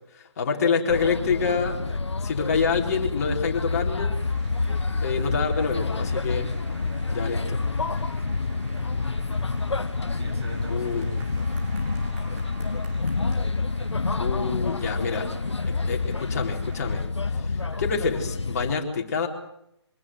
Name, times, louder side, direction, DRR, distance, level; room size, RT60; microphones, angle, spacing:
voice 1, 0.1-1.8 2.2-4.2 5.0-6.5 7.1-7.6 10.7-11.1 14.2-15.3 15.7-17.0 17.3-19.3, left 5 dB, 35° left, 2 dB, 4.1 m, -27 dB
sound 1, 0.9-18.7, left 3 dB, 75° left, 1.3 m, -28 dB
sound 2, 4.1-17.0, right 2 dB, 25° right, 6.5 m, -49 dB
voice 2, 5.2-6.3 6.6-7.4 8.2-11.6 12.1-12.5 17.6-17.9, right 2 dB, 65° right, 4 dB, 7.0 m, -48 dB
25.0 x 20.0 x 7.7 m, 0.77 s
figure-of-eight pair, 150°, 15 cm